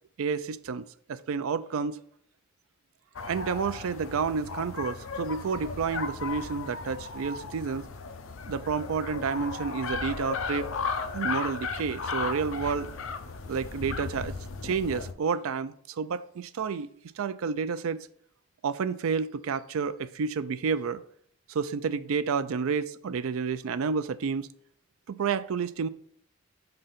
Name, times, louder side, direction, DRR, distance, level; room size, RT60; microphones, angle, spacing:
voice 1, 0.2-2.0 3.3-7.9 8.5-10.7 11.1-12.9 13.5-14.4 14.6-16.9 17.2-18.1 18.6-21.0 21.5-24.5 25.1-25.9, right 5 dB, 85° right, 0.4 m, -30 dB
sound 1, 3.2-15.1, left 4 dB, 75° left, 0.6 m, -35 dB
5.5 x 3.9 x 5.7 m
head